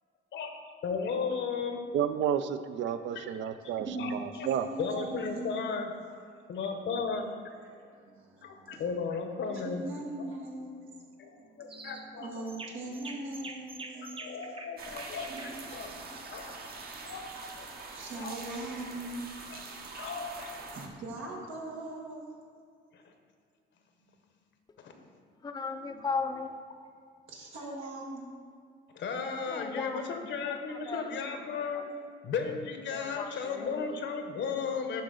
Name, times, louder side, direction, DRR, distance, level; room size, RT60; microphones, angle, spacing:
voice 1, 0.8-1.8 3.1-3.3 4.0-4.1 4.4-4.5 4.8-5.9 6.5-7.3 8.4-9.9 11.2-12.5 13.9-15.9 16.3-16.5 17.0-17.2 17.6-17.9 18.2-18.4 19.5-19.6 20.0-20.5 22.9-23.0 24.8-25.1 28.9-31.9 32.2-35.0, left 5 dB, 70° left, 5 dB, 0.9 m, -35 dB
voice 2, 1.9-4.7, right 9 dB, 70° right, 11 dB, 0.4 m, -31 dB
voice 3, 3.7-4.1 4.4-5.8 7.7-8.8 9.5-10.7 11.3-14.1 16.7-17.0 17.9-19.3 20.7-22.3 25.9-26.0 27.2-28.3, right 2 dB, 90° right, -2 dB, 1.6 m, -41 dB
sound 1, 11.7-12.1 12.5-17.2, right 3 dB, 25° right, 0.6 m, -47 dB
sound 2, 14.8-20.9, right 3 dB, 50° right, 1.0 m, -44 dB
voice 4, 25.4-26.6 29.4-30.1 30.4-31.9 32.9-34.0 34.7-34.8, left 4 dB, 20° left, 7 dB, 0.5 m, -38 dB
11.5 x 3.9 x 3.8 m, 2.2 s
cardioid pair, 90°, 20 cm